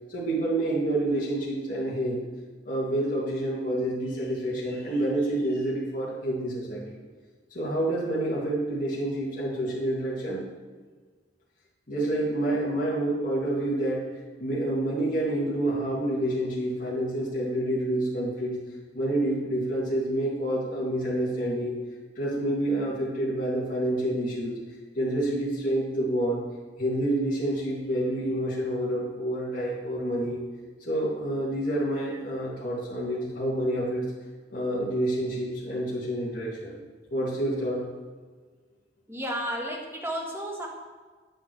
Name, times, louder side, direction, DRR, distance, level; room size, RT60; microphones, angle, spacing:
voice 1, 0.1-2.2 2.6-7.0 7.5-10.4 11.9-14.0 14.4-18.6 18.9-21.8 22.1-24.5 24.9-26.4 26.8-30.4 30.9-34.0 34.5-36.8 37.1-37.8, right 1 dB, 45° left, -7 dB, 2.7 m, -28 dB
voice 2, 39.1-40.7, equal, 15° right, -1 dB, 1.7 m, -32 dB
10.0 x 6.0 x 6.4 m, 1.4 s
head